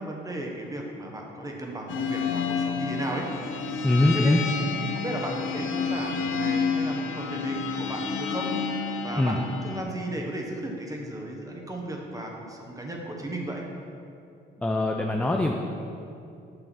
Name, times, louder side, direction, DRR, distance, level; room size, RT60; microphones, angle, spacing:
voice 1, 0.0-4.3 4.6-13.6, right 1 dB, 15° right, 0 dB, 1.4 m, -35 dB
sound 1, 1.9-9.8, left 5 dB, 80° left, 0.8 m, -30 dB
voice 2, 3.8-4.4 9.2-9.4 14.6-15.5, left 1 dB, 5° left, 1 dB, 0.5 m, -22 dB
9.1 x 6.5 x 4.2 m, 2.6 s
cardioid pair, 90°, 20 cm